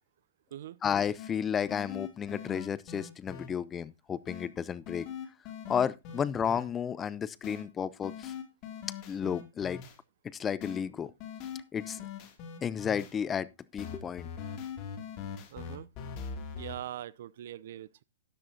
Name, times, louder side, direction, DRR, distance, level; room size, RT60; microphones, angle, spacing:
voice 1, 0.8-5.1 5.7-8.3 9.1-9.8 10.2-11.1 11.7-12.0 12.6-14.3, left 7 dB, 20° left, 0.6 m, -32 dB
sound 1, 1.2-1.3 1.7-3.5 4.3-4.5 4.9-6.6 7.4-7.6 8.0-10.0 10.6-10.8 11.2-13.1 13.8-16.8, left 7 dB, 40° left, 2.4 m, -41 dB
voice 2, 15.5-15.9 16.6-18.0, right 12 dB, 60° right, 0.6 m, -42 dB
13.0 x 10.0 x 2.7 m
hypercardioid pair, 115°, 0 cm